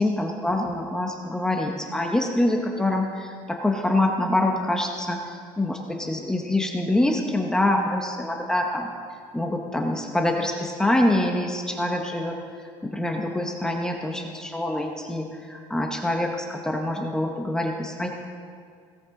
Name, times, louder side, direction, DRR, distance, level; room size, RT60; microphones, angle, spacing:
voice 1, 0.0-8.9 9.3-12.4 12.8-18.1, left 1 dB, 5° left, 1 dB, 0.7 m, -25 dB
17.0 x 14.0 x 3.7 m, 2.2 s
cardioid pair, 175°, 11 cm